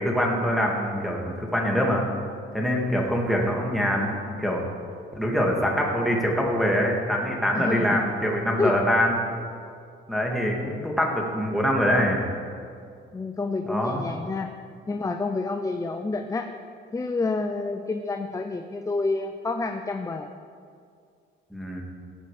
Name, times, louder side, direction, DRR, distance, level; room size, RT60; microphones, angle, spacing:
voice 1, 0.0-2.1 2.5-4.7 5.1-9.2 10.1-12.3 13.7-14.0 21.5-21.8, equal, ahead, -1 dB, 2.2 m, -24 dB
voice 2, 7.5-8.0 8.6-8.7 13.1-14.5 14.9-16.5 16.9-20.3, left 3 dB, 15° left, 6 dB, 0.5 m, -28 dB
16.5 x 5.8 x 5.0 m, 2.3 s
cardioid pair, 90°, 20 cm